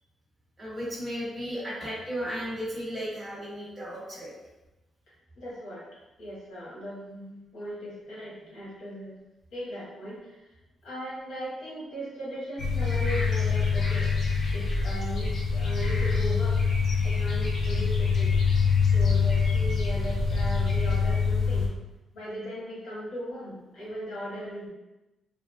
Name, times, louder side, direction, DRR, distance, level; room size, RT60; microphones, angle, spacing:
voice 1, 0.6-4.3, equal, 20° right, -8 dB, 1.1 m, -34 dB
voice 2, 5.3-5.8 6.2-9.2 9.5-10.5 10.8-14.1 14.5-16.6 17.0-18.4 18.9-21.7 22.1-24.7, equal, 80° left, -7 dB, 1.4 m, -38 dB
sound 1, 12.6-21.7, left 5 dB, 45° left, 0.7 m, -25 dB
3.4 x 2.2 x 2.4 m, 1.0 s
cardioid pair, 155°, 0 cm